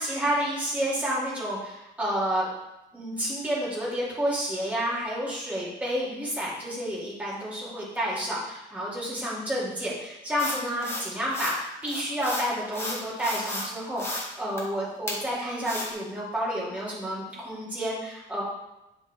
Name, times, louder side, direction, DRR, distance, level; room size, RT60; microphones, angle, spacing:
voice 1, 0.0-2.5 2.9-18.4, equal, 5° right, -7 dB, 2.7 m, -30 dB
sound 1, 10.4-11.6 11.8-13.7 14.0-14.3 14.6-14.7 15.1-15.2 15.6-15.9, left 1 dB, 10° left, 1.7 m, -33 dB
10.0 x 3.8 x 3.5 m, 0.92 s
cardioid pair, 90°, 20 cm